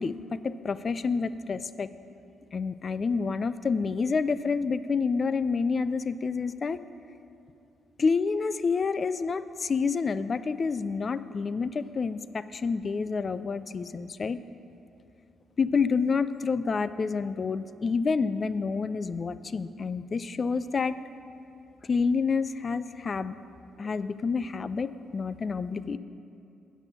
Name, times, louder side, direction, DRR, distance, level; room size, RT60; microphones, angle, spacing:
voice 1, 0.0-1.9 2.5-6.8 8.0-14.4 15.6-21.0 21.8-23.4 23.8-26.0, left 5 dB, 45° left, 14 dB, 0.3 m, -28 dB
8.3 x 6.1 x 6.7 m, 2.7 s
hypercardioid pair, 45°, 0 cm